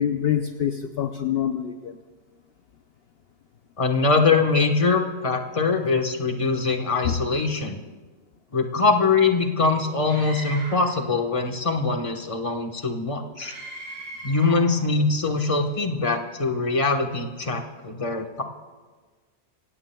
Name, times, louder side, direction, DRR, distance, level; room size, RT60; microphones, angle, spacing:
voice 1, 0.0-2.0 7.0-7.2, left 9 dB, 60° left, 6 dB, 0.8 m, -25 dB
voice 2, 3.8-7.8 8.5-13.5 14.2-18.4, left 4 dB, 30° left, 3 dB, 1.2 m, -23 dB
Screaming, 10.1-11.0 13.4-14.7, right 1 dB, 55° right, 4.0 m, -38 dB
27.0 x 17.0 x 2.3 m, 1.4 s
omnidirectional pair, 1.3 m